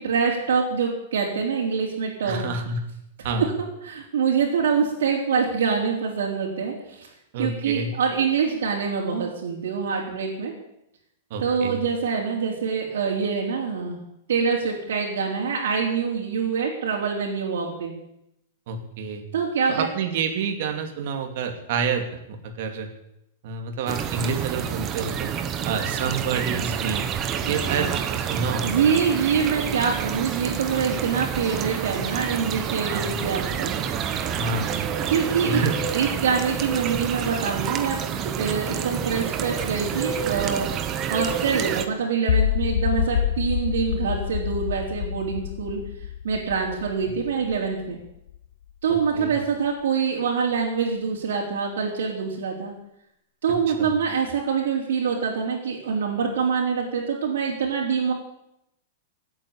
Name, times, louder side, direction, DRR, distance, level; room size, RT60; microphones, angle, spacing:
voice 1, 0.0-2.5 3.6-7.1 7.4-10.5 11.4-14.0 14.3-17.9 19.3-19.9 27.4-27.9 28.6-33.8 35.1-35.6 35.9-40.7 41.1-45.8 46.2-48.0 48.8-52.7 53.4-58.1, right 6 dB, 90° right, -3 dB, 4.0 m, -25 dB
voice 2, 2.3-2.9 3.2-3.5 7.3-7.9 11.3-11.8 18.7-19.2 19.7-22.9 23.4-25.3 25.6-27.1 27.4-28.9 32.9-33.2 34.3-34.9 35.4-35.8 49.1-49.3 53.7-53.9, right 5 dB, 50° right, 5 dB, 2.6 m, -28 dB
sound 1, 23.9-41.9, right 8 dB, 25° right, 1.1 m, -28 dB
sound 2, 42.3-48.4, left 10 dB, 65° left, 0.5 m, -27 dB
17.5 x 8.9 x 8.4 m, 0.81 s
supercardioid pair, 165°, 0 cm